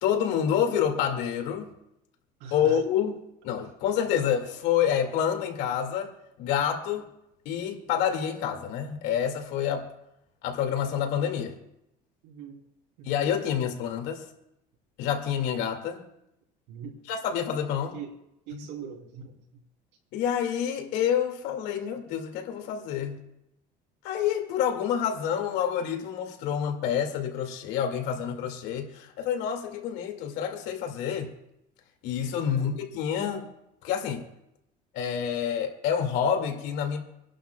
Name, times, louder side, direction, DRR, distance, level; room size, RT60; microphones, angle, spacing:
voice 1, 0.0-1.7 2.5-3.1 3.4-6.1 6.4-7.1 7.5-9.9 10.4-11.5 13.0-14.2 15.0-16.0 17.1-17.9 18.5-18.6 20.1-23.2 24.0-31.3 32.0-33.5 33.8-34.2 34.9-37.0, left 8 dB, 80° left, 3 dB, 2.2 m, -28 dB
voice 2, 2.4-2.8 12.2-12.6 13.0-13.2 16.7-17.0 17.8-18.1 18.5-19.6 32.4-32.7, right 6 dB, 85° right, 0 dB, 3.2 m, -42 dB
27.0 x 11.5 x 2.3 m, 0.84 s
cardioid pair, 135°, 18 cm